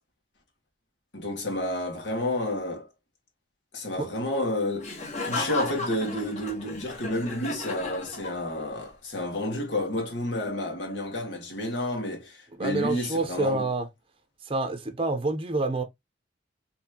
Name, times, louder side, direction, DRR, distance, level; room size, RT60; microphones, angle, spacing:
voice 1, 1.1-2.9 3.7-13.7, left 1 dB, 75° left, 1.9 m, -30 dB
Laughter, 4.8-8.7, left 2 dB, 40° left, 1.5 m, -34 dB
voice 2, 12.5-13.9 14.4-15.8, right 2 dB, 30° right, 0.7 m, -28 dB
4.3 x 3.1 x 2.8 m
head